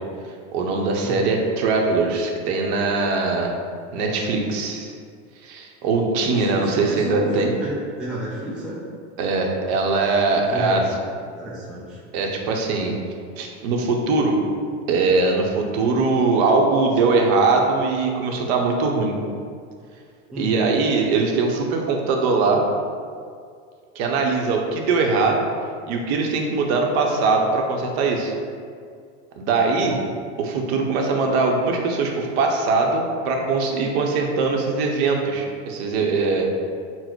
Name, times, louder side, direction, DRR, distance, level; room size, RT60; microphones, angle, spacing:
voice 1, 0.2-3.5 3.9-4.9 5.4-7.5 9.2-10.9 12.1-12.9 13.4-14.4 14.9-19.2 20.4-22.6 23.9-25.5 25.9-28.3 29.4-29.9 30.4-36.5, right 3 dB, 60° right, 1 dB, 0.7 m, -21 dB
voice 2, 6.2-8.8 10.4-11.0 11.4-12.0 20.3-20.5 29.8-30.0, right 1 dB, 5° right, -6 dB, 0.4 m, -31 dB
4.0 x 2.0 x 4.4 m, 2.2 s
supercardioid pair, 125°, 35 cm